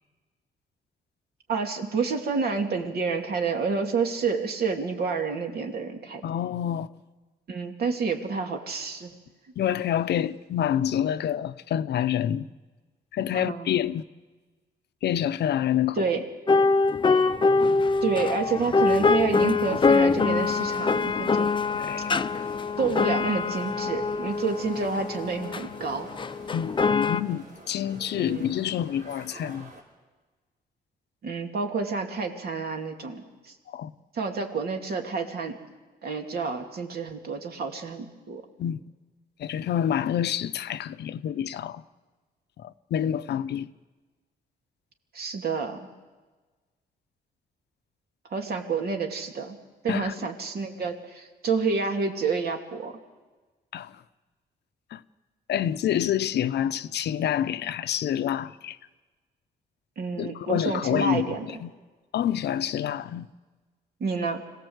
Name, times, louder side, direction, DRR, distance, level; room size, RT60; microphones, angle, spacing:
voice 1, 1.5-6.2 7.5-9.1 13.3-13.7 16.0-16.2 18.0-21.5 22.8-26.1 28.2-28.5 31.2-33.5 34.1-35.6 36.0-38.4 45.1-45.9 48.3-49.6 49.8-52.9 60.0-61.5 64.0-64.4, right 4 dB, 60° right, 2.7 m, -29 dB
voice 2, 6.2-6.9 9.6-12.5 13.1-14.0 15.0-16.1 21.7-22.1 26.5-29.7 33.7-33.9 38.6-38.8 39.4-41.8 42.6-43.7 49.9-50.1 53.7-53.9 54.9-55.0 55.5-58.8 60.2-61.7 62.1-63.3, left 10 dB, 75° left, 0.7 m, -27 dB
sound 1, 16.5-27.2, left 4 dB, 30° left, 0.6 m, -24 dB
sound 2, 20.2-29.8, right 1 dB, 80° right, 5.2 m, -48 dB
26.0 x 17.5 x 8.0 m
cardioid pair, 120°, 18 cm